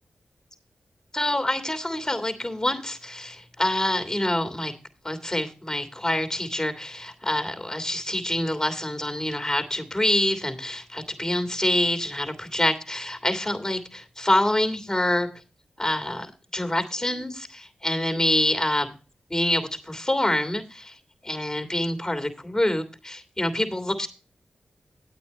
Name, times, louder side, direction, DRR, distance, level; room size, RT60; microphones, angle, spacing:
voice 1, 1.1-4.7 5.0-15.3 15.8-18.9 19.3-21.0 21.2-24.1, left 1 dB, 15° left, 7 dB, 2.8 m, -26 dB
9.9 x 8.8 x 4.2 m, 0.33 s
cardioid pair, 45°, 3 cm